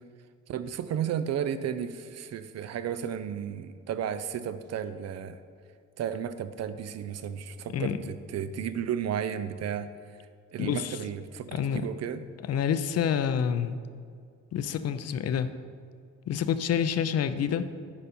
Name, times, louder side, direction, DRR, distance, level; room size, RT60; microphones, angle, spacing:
voice 1, 0.5-5.4 6.0-9.9 10.5-12.2, right 8 dB, 55° right, 12 dB, 0.6 m, -33 dB
voice 2, 10.6-11.0 11.5-11.9 12.5-13.8 14.5-15.5 16.3-17.7, left 8 dB, 55° left, 11 dB, 0.5 m, -28 dB
9.8 x 5.3 x 4.3 m, 2.2 s
cardioid pair, 90°, 30 cm